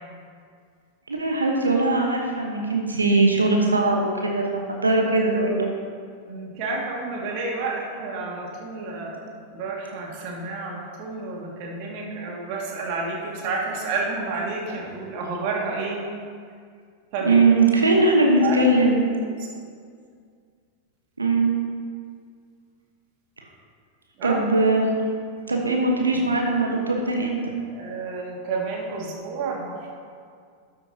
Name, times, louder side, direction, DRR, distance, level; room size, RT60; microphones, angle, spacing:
voice 1, 1.1-5.7 17.2-19.0 21.2-21.5 24.2-24.9 25.5-27.5, right 2 dB, 80° right, 1 dB, 1.2 m, -20 dB
voice 2, 6.3-16.0 17.1-17.4 18.4-18.6 19.4-19.5 24.2-24.4 27.7-29.9, right 3 dB, 45° right, -2 dB, 2.2 m, -30 dB
12.5 x 8.7 x 2.9 m, 2.1 s
figure-of-eight pair, 90°, 0 cm